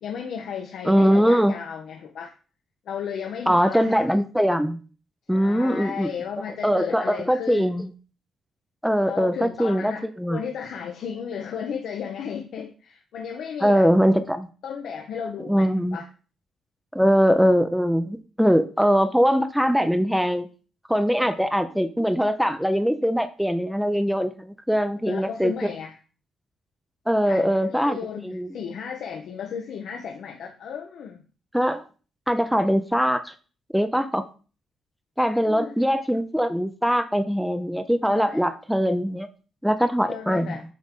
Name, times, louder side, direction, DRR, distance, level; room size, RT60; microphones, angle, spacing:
voice 1, 0.0-2.3 2.9-4.1 5.3-7.7 9.0-13.9 14.6-16.1 25.1-26.0 27.2-28.2 28.5-31.2 35.4-35.8 38.1-38.4 40.1-40.6, left 7 dB, 70° left, 3 dB, 0.7 m, -34 dB
voice 2, 0.8-1.5 3.5-4.8 5.3-6.1 6.6-7.9 8.8-10.4 13.6-14.5 15.5-16.0 16.9-20.5 20.9-25.5 27.1-28.0 28.2-28.5 31.5-31.8 32.3-33.3 33.7-34.2 35.2-39.3 39.6-40.6, equal, ahead, 9 dB, 0.5 m, -22 dB
7.4 x 3.7 x 3.6 m, 0.37 s
cardioid pair, 90°, 0 cm